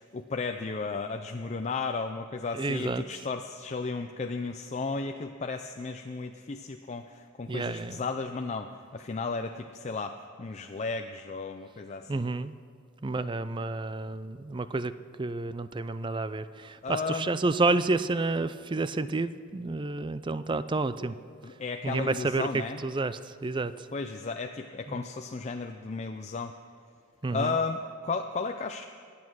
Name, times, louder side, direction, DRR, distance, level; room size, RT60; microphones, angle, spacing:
voice 1, 0.0-12.2 16.8-17.3 21.4-22.8 23.9-26.5 27.3-28.8, left 4 dB, 35° left, 5 dB, 0.5 m, -34 dB
voice 2, 2.5-3.0 7.5-8.0 12.1-12.5 13.0-14.9 15.2-21.2 21.8-23.9 24.9-25.0 27.2-27.6, right 3 dB, 25° right, 13 dB, 0.4 m, -30 dB
23.0 x 8.6 x 6.2 m, 2.1 s
head